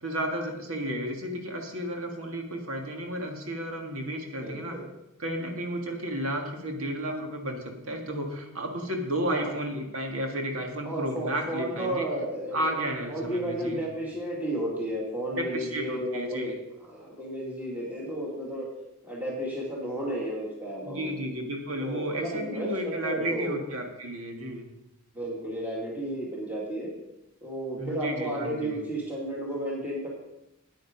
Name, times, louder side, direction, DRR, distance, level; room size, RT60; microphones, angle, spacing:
voice 1, 0.0-4.8 5.2-7.6 7.8-12.1 12.5-13.8 15.3-16.5 20.8-24.7 27.8-28.8, right 1 dB, 75° right, 3 dB, 1.8 m, -32 dB
voice 2, 4.4-4.8 9.2-9.5 10.8-12.8 13.1-16.6 16.9-18.7 19.0-21.1 21.8-23.6 25.1-26.9 27.4-30.1, right 1 dB, 10° right, -4 dB, 2.2 m, -33 dB
9.3 x 8.9 x 5.2 m, 0.91 s
head